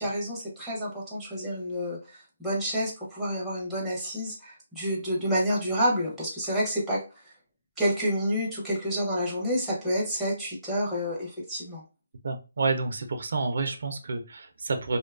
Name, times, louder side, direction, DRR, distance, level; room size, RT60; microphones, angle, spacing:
voice 1, 0.0-7.0 7.8-11.8, equal, ahead, -6 dB, 0.6 m, -29 dB
voice 2, 12.2-15.0, right 3 dB, 55° right, 6 dB, 0.4 m, -29 dB
2.5 x 2.2 x 2.3 m, 0.31 s
hypercardioid pair, 175°, 0 cm